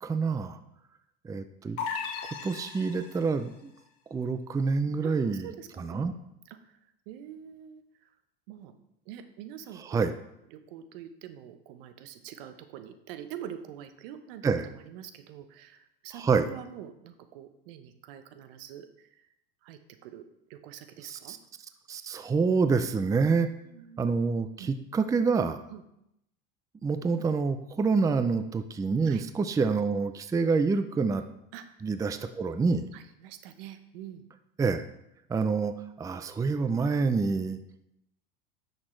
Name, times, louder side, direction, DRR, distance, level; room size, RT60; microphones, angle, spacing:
voice 1, 0.0-0.6 1.2-1.8 2.4-3.7 4.1-5.5 5.8-6.1 9.8-10.1 14.4-14.7 16.1-16.5 21.0-21.4 21.9-23.5 24.0-25.6 26.8-31.2 31.8-32.9 34.6-34.8 35.3-37.6, right 4 dB, 10° right, 10 dB, 0.4 m, -27 dB
sound 1, 1.8-3.4, left 5 dB, 55° left, 1.3 m, -36 dB
voice 2, 5.0-6.1 6.4-6.8 7.1-7.8 8.5-8.7 9.1-10.2 10.5-19.2 19.6-20.2 20.5-21.4 23.6-24.1 24.6-24.8 25.7-25.8 29.0-29.2 31.5-31.8 32.9-34.2, right 9 dB, 75° right, 9 dB, 0.9 m, -45 dB
9.8 x 6.5 x 3.2 m, 0.82 s
supercardioid pair, 100°, 29 cm